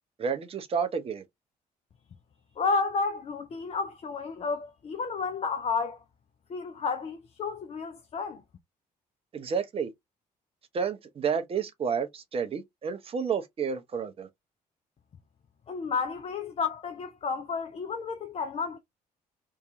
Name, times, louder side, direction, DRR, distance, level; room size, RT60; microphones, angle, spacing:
voice 1, 0.2-1.2 9.3-9.9 10.7-14.3, right 6 dB, 30° right, 0.6 m, -30 dB
voice 2, 2.6-6.0 6.5-8.4 15.7-18.8, left 4 dB, 30° left, 0.4 m, -31 dB
2.7 x 2.3 x 2.6 m
figure-of-eight pair, 45°, 20 cm